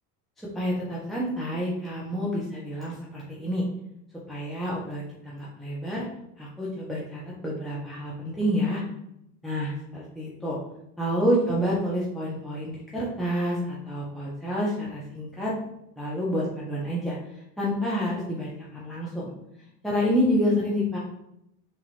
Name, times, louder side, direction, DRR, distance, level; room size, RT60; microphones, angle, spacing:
voice 1, 0.4-3.6 4.3-6.0 6.4-8.8 9.4-10.6 11.0-15.5 16.0-17.2 17.6-19.3 19.8-21.0, equal, ahead, -7 dB, 1.1 m, -28 dB
3.8 x 2.9 x 4.3 m, 0.79 s
supercardioid pair, 80°, 46 cm